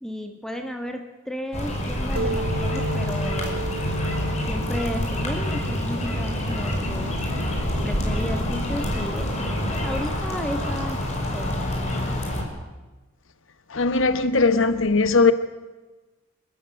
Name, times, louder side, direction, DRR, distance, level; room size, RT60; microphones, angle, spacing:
voice 1, 0.0-3.7 4.3-7.2 7.8-9.4 9.8-11.0 11.3-11.6, equal, ahead, 1.6 m, -33 dB
sound 1, 1.5-12.4, left 1 dB, 35° left, 5.2 m, -27 dB
sound 2, 2.2-9.5, right 1 dB, 90° right, 3.2 m, -34 dB
voice 2, 13.7-15.3, left 4 dB, 65° left, 1.1 m, -19 dB
29.0 x 13.5 x 9.1 m
head